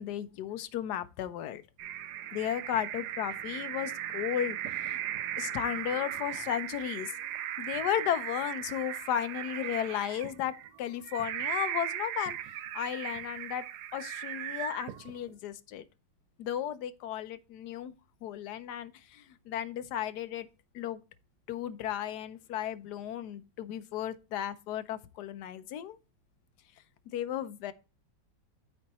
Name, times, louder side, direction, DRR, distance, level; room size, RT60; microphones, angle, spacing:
voice 1, 0.0-1.6 2.3-4.6 4.8-5.0 5.4-7.1 7.6-12.4 12.7-13.7 13.9-15.8 16.4-17.9 18.2-20.5 20.7-21.0 21.5-26.0 27.1-27.7, left 10 dB, 70° left, 1.1 m, -34 dB
sound 1, 1.8-15.3, right 11 dB, 70° right, 1.1 m, -37 dB
12.5 x 4.5 x 2.9 m
omnidirectional pair, 2.0 m